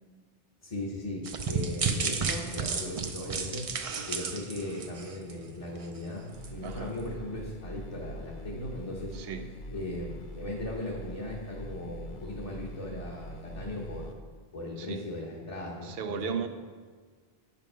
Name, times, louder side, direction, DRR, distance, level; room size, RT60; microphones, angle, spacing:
voice 1, 0.6-3.7 4.1-9.2 9.7-14.1 14.5-16.4, left 1 dB, 35° left, -5 dB, 1.1 m, -38 dB
sound 1, 1.2-5.5 5.8-6.0 6.4-6.5, right 5 dB, 45° right, 0.5 m, -32 dB
sound 2, 6.3-14.1, equal, 55° left, 0.8 m, -43 dB
voice 2, 9.1-9.5 14.8-15.0 15.8-16.5, right 6 dB, 75° right, 9 dB, 0.8 m, -35 dB
8.3 x 5.4 x 5.6 m, 1.5 s
omnidirectional pair, 1.0 m